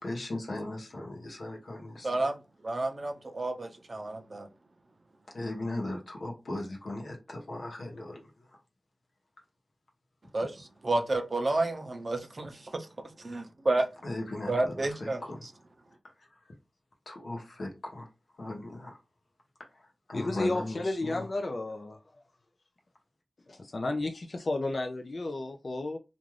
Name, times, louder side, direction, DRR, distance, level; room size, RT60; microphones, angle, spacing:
voice 1, 0.0-2.3 5.3-8.2 14.0-15.4 17.1-18.1 18.4-19.0 20.1-21.2, left 2 dB, 80° left, 0.9 m, -38 dB
voice 2, 2.0-4.5 10.3-12.9 13.2-13.9 14.5-15.5, right 2 dB, 50° right, 0.5 m, -31 dB
voice 3, 20.1-22.0 23.5-26.0, left 2 dB, 55° left, 0.3 m, -32 dB
2.5 x 2.4 x 3.1 m
wide cardioid pair, 75°, 0 cm